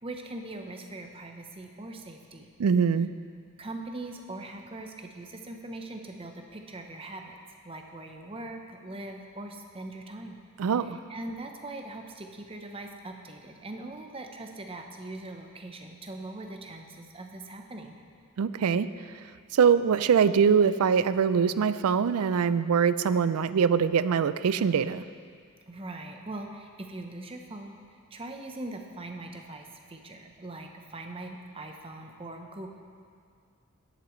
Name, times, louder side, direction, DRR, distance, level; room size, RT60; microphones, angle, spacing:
voice 1, 0.0-2.5 3.6-7.4 7.6-10.4 10.8-17.9 25.7-32.7, right 2 dB, 25° right, 3 dB, 0.8 m, -41 dB
voice 2, 2.6-3.1 10.6-11.0 18.4-18.9 19.5-25.1, right 6 dB, 80° right, 14 dB, 0.4 m, -23 dB
17.5 x 8.1 x 3.1 m, 2.2 s
head